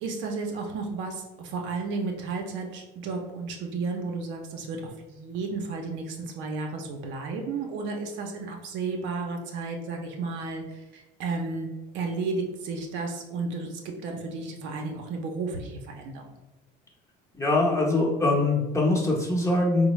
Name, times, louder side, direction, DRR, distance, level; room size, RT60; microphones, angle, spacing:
voice 1, 0.0-4.8 5.1-16.3, right 3 dB, 65° right, 2 dB, 0.6 m, -33 dB
voice 2, 17.3-19.9, left 2 dB, 15° left, -3 dB, 0.9 m, -23 dB
3.7 x 2.1 x 3.0 m, 1.0 s
supercardioid pair, 90°, 20 cm